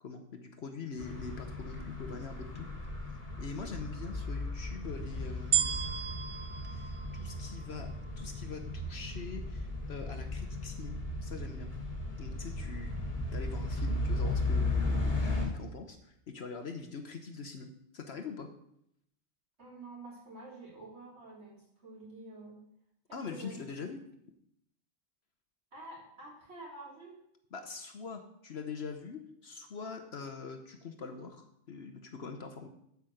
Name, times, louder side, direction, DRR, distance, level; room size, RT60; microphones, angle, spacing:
voice 1, 0.0-2.7 3.4-5.8 6.6-7.9 8.2-11.0 11.2-11.7 12.2-12.9 13.3-17.7 17.9-18.5 23.1-24.0 27.5-32.7, left 5 dB, 55° left, 6 dB, 1.0 m, -43 dB
sound 1, 1.0-15.5, left 2 dB, 30° left, 1.7 m, -36 dB
sound 2, 5.5-7.9 8.6-8.7, right 8 dB, 35° right, 0.5 m, -33 dB
voice 2, 19.6-22.6 23.1-23.6 25.7-27.2, right 2 dB, 55° right, -6 dB, 3.9 m, -48 dB
8.4 x 5.6 x 7.8 m, 0.75 s
omnidirectional pair, 1.4 m